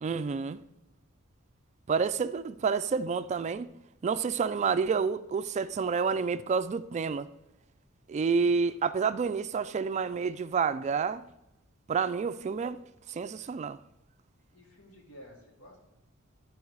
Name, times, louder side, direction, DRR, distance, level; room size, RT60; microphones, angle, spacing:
voice 1, 0.0-0.6 1.9-3.7 4.0-7.3 8.1-11.2 11.9-12.8 13.1-13.8, right 5 dB, 35° right, 0.3 m, -29 dB
voice 2, 8.2-8.8 14.5-16.0, equal, 80° left, 2.3 m, -54 dB
11.0 x 4.7 x 4.6 m
head